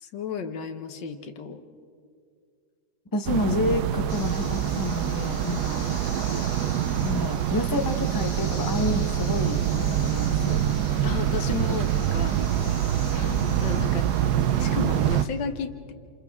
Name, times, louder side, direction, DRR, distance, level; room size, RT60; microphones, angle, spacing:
voice 1, 0.0-1.6 11.0-12.4 13.1-14.1 14.6-15.9, left 6 dB, 90° left, 8 dB, 1.8 m, -33 dB
voice 2, 3.1-5.9 7.0-10.6, left 2 dB, 15° left, 5 dB, 0.9 m, -29 dB
sound 1, 3.3-15.2, right 10 dB, 70° right, 1.2 m, -25 dB
sound 2, 4.1-15.3, left 4 dB, 45° left, 1.8 m, -43 dB
28.5 x 27.5 x 3.6 m, 2.3 s
omnidirectional pair, 1.9 m